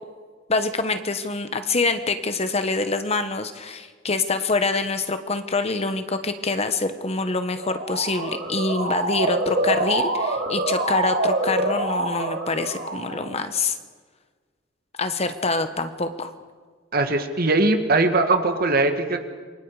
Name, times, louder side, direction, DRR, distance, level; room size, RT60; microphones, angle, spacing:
voice 1, 0.5-13.8 15.0-16.3, left 3 dB, 35° left, 9 dB, 1.2 m, -25 dB
Motor vehicle (road) / Siren, 7.5-13.4, right 2 dB, 85° right, 4.2 m, -26 dB
voice 2, 16.9-19.2, right 2 dB, 50° right, 6 dB, 2.0 m, -20 dB
27.5 x 24.0 x 4.9 m, 1.5 s
head